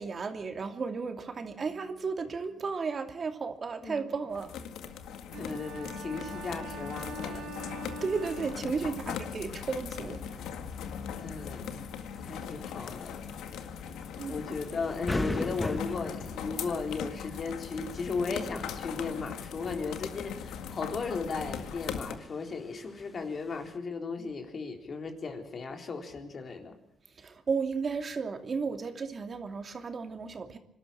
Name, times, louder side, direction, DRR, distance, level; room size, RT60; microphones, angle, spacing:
voice 1, 0.0-4.5 8.0-10.2 14.2-14.5 27.2-30.6, right 5 dB, 40° right, 6 dB, 2.7 m, -34 dB
voice 2, 3.8-4.1 5.1-7.6 11.2-11.7 12.2-13.2 14.3-26.8, left 4 dB, 45° left, 5 dB, 3.8 m, -36 dB
sound 1, 4.3-22.1, left 7 dB, 85° left, 1.9 m, -39 dB
sound 2, 5.3-9.2, right 3 dB, 75° right, 3.9 m, -44 dB
sound 3, 8.3-23.8, left 2 dB, 15° left, 1.7 m, -43 dB
25.5 x 13.0 x 9.1 m, 0.73 s
cardioid pair, 90°, 0 cm